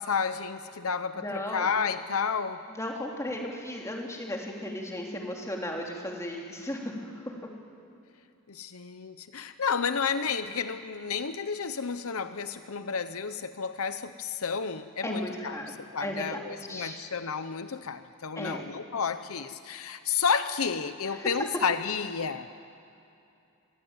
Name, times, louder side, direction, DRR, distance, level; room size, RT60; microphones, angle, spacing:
voice 1, 0.0-2.7 8.5-22.5, left 6 dB, 70° left, 11 dB, 0.8 m, -31 dB
voice 2, 1.2-1.7 2.7-7.3 15.0-15.7 16.0-16.2 16.7-17.0 18.4-18.7 21.2-21.3, left 1 dB, 15° left, 0 dB, 3.2 m, -35 dB
25.5 x 20.0 x 8.9 m, 2.7 s
head